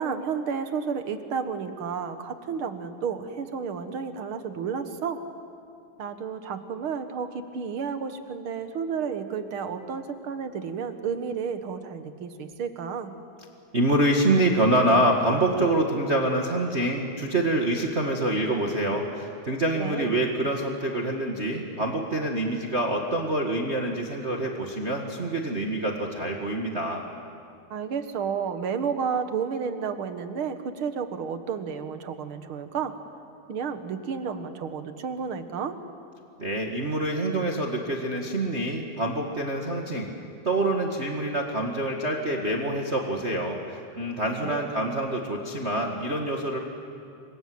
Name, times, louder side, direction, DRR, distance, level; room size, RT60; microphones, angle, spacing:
voice 1, 0.0-5.2 6.0-13.1 19.8-20.1 27.7-33.0 33.5-35.8 44.4-44.6, right 6 dB, 55° right, 9 dB, 1.9 m, -31 dB
voice 2, 13.7-27.0 36.4-40.1 40.4-46.6, right 1 dB, 25° right, 1 dB, 1.6 m, -26 dB
29.5 x 25.0 x 7.9 m, 2.4 s
omnidirectional pair, 3.3 m